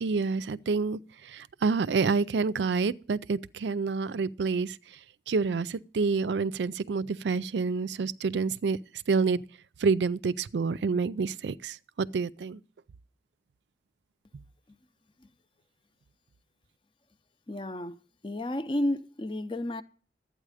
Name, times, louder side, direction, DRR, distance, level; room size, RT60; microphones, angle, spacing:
voice 1, 0.0-4.8 5.3-8.8 9.1-9.4 9.8-12.6, right 4 dB, 85° right, 0.4 m, -28 dB
voice 2, 17.5-18.0 18.2-19.8, left 1 dB, 30° left, 0.5 m, -31 dB
12.0 x 9.0 x 4.9 m
head